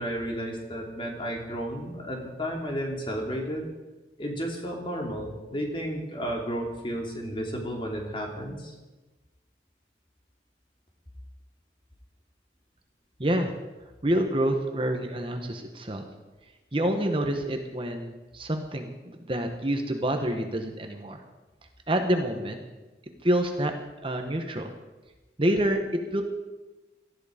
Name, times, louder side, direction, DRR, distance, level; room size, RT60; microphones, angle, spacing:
voice 1, 0.0-3.6 4.2-8.7, equal, 30° left, 1 dB, 2.8 m, -32 dB
voice 2, 13.2-13.5 14.0-16.0 16.7-21.2 21.9-22.6 23.2-23.7 24.0-24.7 25.4-25.8 26.1-26.2, right 1 dB, 30° right, 5 dB, 1.3 m, -27 dB
18.0 x 13.5 x 5.1 m, 1.2 s
head